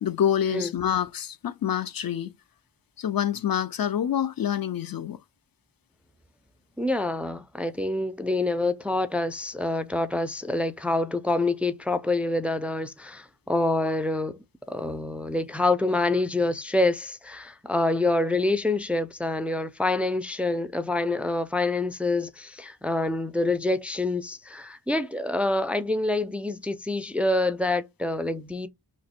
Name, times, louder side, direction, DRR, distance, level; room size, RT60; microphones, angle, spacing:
voice 1, 0.0-2.3 3.0-5.2, left 9 dB, 60° left, 0.5 m, -27 dB
voice 2, 6.8-28.7, left 2 dB, 5° right, 0.4 m, -26 dB
3.1 x 2.4 x 4.2 m
cardioid pair, 70°, 41 cm